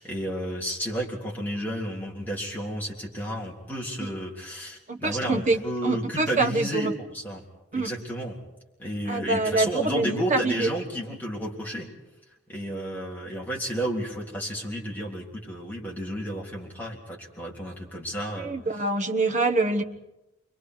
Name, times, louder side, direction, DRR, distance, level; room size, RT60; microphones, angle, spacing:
voice 1, 0.0-7.4 7.7-8.4 8.8-11.9 12.5-18.5, equal, 10° left, 3.6 m, -32 dB
voice 2, 4.9-6.9 7.7-7.9 9.1-10.7 18.4-19.8, right 3 dB, 40° right, 1.2 m, -25 dB
29.0 x 23.0 x 4.8 m
head